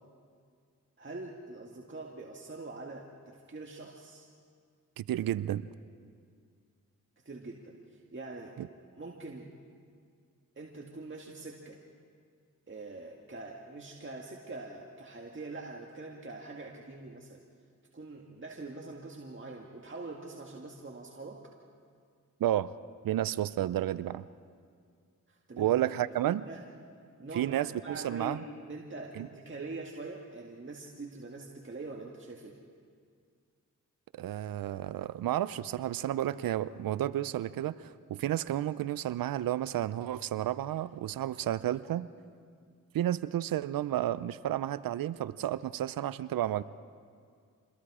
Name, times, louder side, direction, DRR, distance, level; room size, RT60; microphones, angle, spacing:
voice 1, 1.0-4.3 7.3-8.6 9.0-9.5 10.6-11.8 12.7-17.4 17.9-21.5 25.3-25.8 26.2-26.6 27.2-27.5 27.8-32.6, right 3 dB, 35° right, -1 dB, 2.0 m, -44 dB
voice 2, 5.0-5.7 8.6-8.7 22.4-22.7 23.0-24.2 25.6-26.4 27.3-28.4 29.2-29.3 34.2-42.1 42.9-46.6, right 12 dB, 75° right, 16 dB, 0.6 m, -31 dB
27.0 x 21.0 x 4.9 m, 2.2 s
cardioid pair, 45°, 34 cm